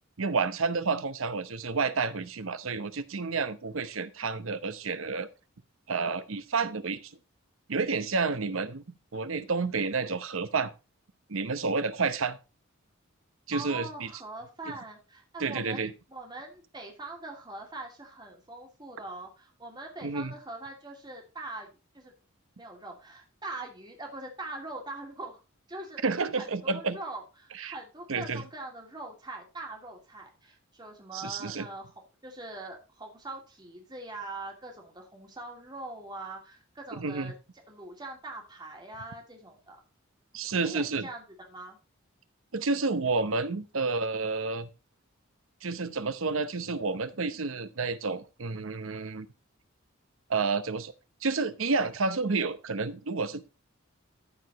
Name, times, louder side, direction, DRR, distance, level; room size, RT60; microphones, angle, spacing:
voice 1, 0.2-5.3 5.9-7.2 7.7-10.7 11.3-12.4 13.5-14.1 15.4-15.9 20.0-20.3 26.0-27.0 27.6-27.7 28.1-28.4 31.1-31.7 36.9-37.3 40.3-41.1 42.5-44.7 45.6-49.3 50.3-50.9 51.2-53.5, right 4 dB, 75° right, 12 dB, 0.9 m, -30 dB
voice 2, 13.5-22.1 22.6-25.4 25.7-31.9 32.2-37.3 37.7-39.8 40.5-41.8, right 2 dB, 20° right, 1 dB, 2.5 m, -42 dB
14.0 x 4.9 x 4.1 m, 0.30 s
head